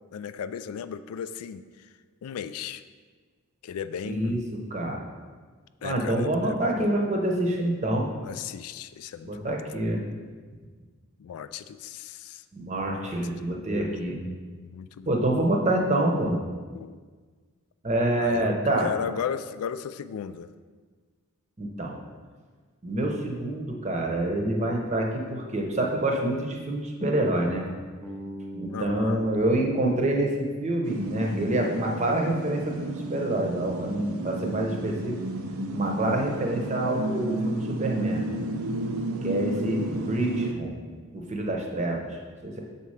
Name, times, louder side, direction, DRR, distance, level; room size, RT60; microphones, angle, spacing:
voice 1, 0.1-1.9 2.2-2.8 3.6-4.4 5.8-6.9 8.2-9.6 11.2-12.4 12.9-13.5 14.5-15.2 16.7-17.0 18.2-20.5 28.7-29.2, left 7 dB, 85° left, 13 dB, 0.3 m, -36 dB
voice 2, 4.1-4.4 4.7-5.0 5.8-8.1 9.2-10.0 12.5-14.2 15.1-16.4 17.8-18.9 21.6-22.0 22.8-27.7 28.5-35.1 35.7-38.2 39.2-40.8 41.1-42.6, right 1 dB, 30° right, 1 dB, 0.8 m, -27 dB
Bass guitar, 28.0-32.1, right 1 dB, 5° right, 0.5 m, -43 dB
sound 1, 30.8-40.5, right 2 dB, 80° right, 0.6 m, -32 dB
6.9 x 4.2 x 4.9 m, 1.5 s
head